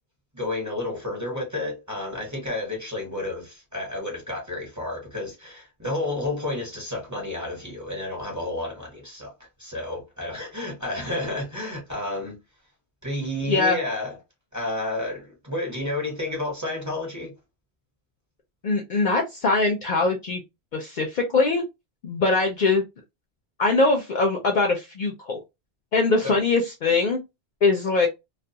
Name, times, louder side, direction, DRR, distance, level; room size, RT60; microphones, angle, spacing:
voice 1, 0.3-9.3 9.6-12.4 13.0-14.2 14.5-17.3 26.2-26.4, left 2 dB, 20° right, 0.9 m, -31 dB
voice 2, 13.5-13.8 18.6-20.4 20.7-21.6 22.0-22.8 23.6-25.4 25.9-27.2 27.6-28.1, left 3 dB, 60° left, 0.6 m, -22 dB
2.3 x 2.2 x 2.6 m
omnidirectional pair, 1.1 m